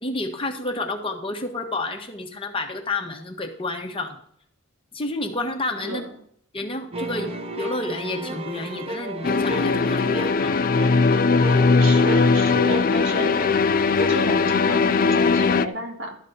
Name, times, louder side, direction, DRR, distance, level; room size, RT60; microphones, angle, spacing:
voice 1, 0.0-4.2 4.9-6.0 6.5-10.5, left 2 dB, 25° left, 3 dB, 1.3 m, -30 dB
voice 2, 5.8-6.2 11.8-13.4 14.1-16.2, right 1 dB, 65° right, 3 dB, 2.4 m, -31 dB
sound 1, 6.9-14.2, equal, 30° right, 0.9 m, -34 dB
sound 2, 9.2-15.7, left 4 dB, 45° left, 0.5 m, -19 dB
12.5 x 4.2 x 8.0 m, 0.65 s
head